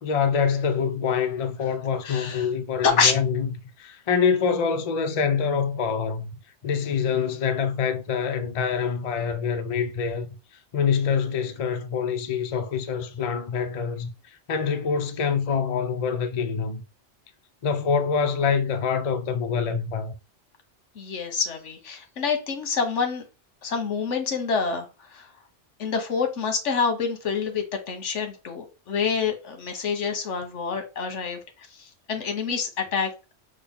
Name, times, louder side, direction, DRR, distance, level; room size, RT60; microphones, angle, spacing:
voice 1, 0.0-3.5 3.8-6.3 6.6-10.3 10.7-14.1 14.5-16.8 17.6-20.1, left 6 dB, 45° left, 0.5 m, -25 dB
voice 2, 2.0-2.5 2.8-3.1 21.0-23.2 23.6-25.3 25.8-31.4 31.7-33.3, left 5 dB, 80° left, 1.3 m, -27 dB
6.4 x 2.2 x 3.5 m
omnidirectional pair, 1.2 m